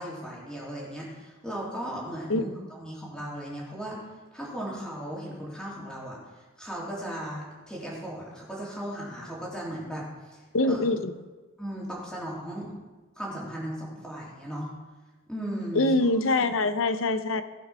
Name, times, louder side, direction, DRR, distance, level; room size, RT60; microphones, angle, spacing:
voice 1, 0.0-4.0 4.3-6.2 6.6-10.0 10.3-10.4 10.7-10.9 11.6-12.7 13.2-14.7 15.3-16.1, equal, 5° left, -6 dB, 3.1 m, -36 dB
voice 2, 10.5-11.1 15.7-17.4, left 2 dB, 75° left, 11 dB, 0.7 m, -24 dB
16.0 x 5.9 x 5.7 m, 1.2 s
head